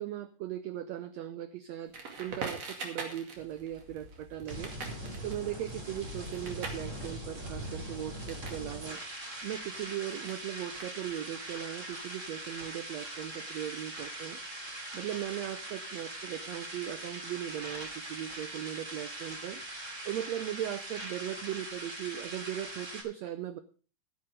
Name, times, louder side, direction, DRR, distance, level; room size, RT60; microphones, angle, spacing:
voice 1, 0.0-4.7 5.2-9.0 9.4-14.4 14.9-19.6 20.0-23.6, right 11 dB, 85° right, 12 dB, 1.5 m, -38 dB
Crackle, 1.9-8.6 8.9-11.3, right 4 dB, 50° right, 3.2 m, -43 dB
sound 1, 3.4-23.0, right 1 dB, 25° right, 2.5 m, -42 dB
13.5 x 9.9 x 5.0 m, 0.38 s
omnidirectional pair, 3.8 m